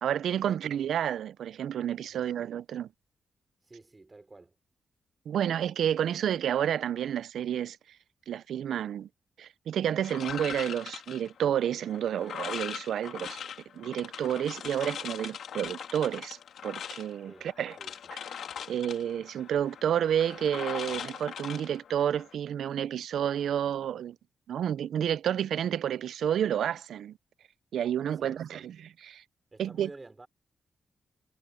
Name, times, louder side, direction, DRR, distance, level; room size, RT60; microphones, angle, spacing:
voice 1, 0.0-2.9 5.3-7.8 8.3-9.1 9.4-13.4 13.7-16.4 16.6-17.8 18.1-18.2 18.7-24.2 24.5-27.1 27.7-29.2 29.6-29.9, right 9 dB, 90° right, 0.4 m, -30 dB
voice 2, 3.6-4.5 17.3-17.5 17.8-18.0 28.1-28.6 29.5-30.3, right 3 dB, 25° right, 4.4 m, -50 dB
sound 1, 10.0-22.4, left 8 dB, 85° left, 2.0 m, -41 dB
cardioid pair, 105°, 0 cm